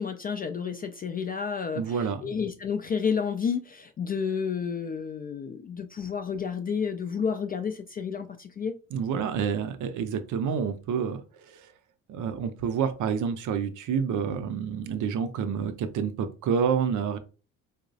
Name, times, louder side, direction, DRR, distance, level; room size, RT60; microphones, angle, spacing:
voice 1, 0.0-8.7, left 6 dB, 25° left, 6 dB, 0.3 m, -31 dB
voice 2, 1.8-2.2 8.9-11.2 11.5-11.7 12.1-17.2, right 7 dB, 45° right, 10 dB, 0.6 m, -28 dB
4.5 x 2.0 x 2.5 m, 0.34 s
hypercardioid pair, 50°, 43 cm